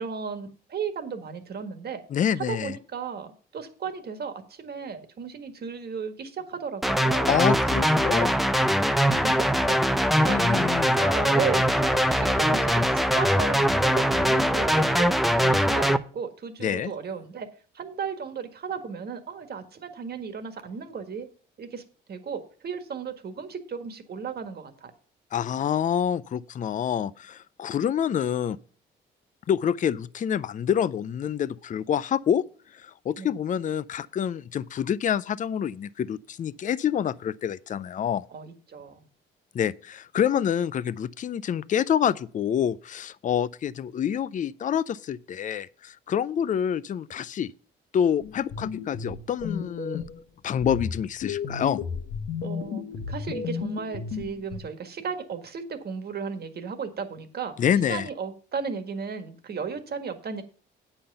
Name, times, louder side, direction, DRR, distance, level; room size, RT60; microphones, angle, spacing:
voice 1, 0.0-2.0 2.5-7.3 9.1-9.8 10.2-10.7 11.0-17.5 17.7-21.3 21.6-21.8 22.1-24.9 33.2-33.3 38.3-39.0 52.4-57.5 57.9-60.4, right 6 dB, 55° right, 1.6 m, -35 dB
voice 2, 2.1-2.8 7.3-8.4 10.2-10.9 16.6-16.9 25.3-28.6 29.5-32.4 32.7-38.3 39.5-47.5 47.9-50.0 50.4-51.8 57.6-58.1, left 9 dB, 40° left, 0.4 m, -27 dB
sound 1, 6.8-16.0, equal, ahead, 0.6 m, -22 dB
sound 2, 48.2-50.2 50.6-54.6, left 6 dB, 75° left, 1.1 m, -33 dB
8.7 x 5.7 x 6.7 m
cardioid pair, 90°, 20 cm